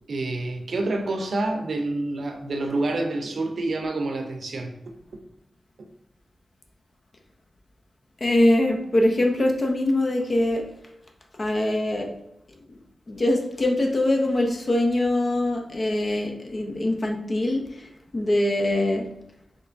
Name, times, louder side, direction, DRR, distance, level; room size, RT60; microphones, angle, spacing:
voice 1, 0.1-4.7, right 2 dB, 65° right, 3 dB, 0.5 m, -27 dB
voice 2, 8.2-10.6 11.4-12.1 12.7-12.8 13.1-19.1, left 1 dB, 40° left, 2 dB, 0.5 m, -23 dB
4.3 x 3.0 x 2.6 m, 0.79 s
wide cardioid pair, 115°, 0 cm